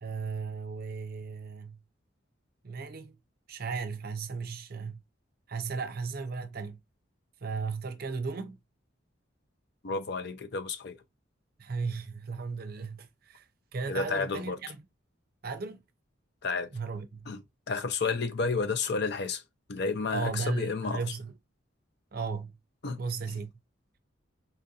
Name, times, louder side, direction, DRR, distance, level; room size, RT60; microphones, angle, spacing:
voice 1, 0.0-1.8 2.6-3.2 3.5-5.0 5.5-6.8 7.4-8.6 11.6-13.5 13.7-14.8 15.4-15.8 16.7-17.3 20.1-21.3 22.1-22.6 23.0-23.5, right 4 dB, 50° right, 0.6 m, -35 dB
voice 2, 9.8-11.0 13.9-14.6 16.4-16.7 17.3-19.4 19.7-21.0 22.8-23.0 23.3-23.4, left 4 dB, 55° left, 0.6 m, -31 dB
4.1 x 2.6 x 2.7 m
head